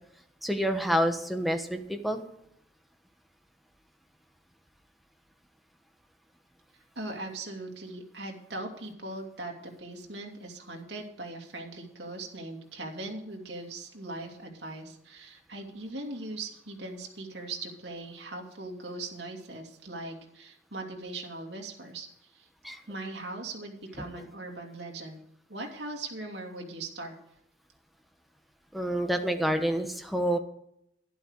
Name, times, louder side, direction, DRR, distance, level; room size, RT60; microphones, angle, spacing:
voice 1, 0.4-2.2 22.6-22.8 28.7-30.4, equal, ahead, 5 dB, 1.2 m, -28 dB
voice 2, 7.0-22.5 22.9-25.2 25.5-27.1, right 2 dB, 70° right, 2 dB, 2.6 m, -40 dB
12.0 x 11.5 x 4.8 m, 0.74 s
head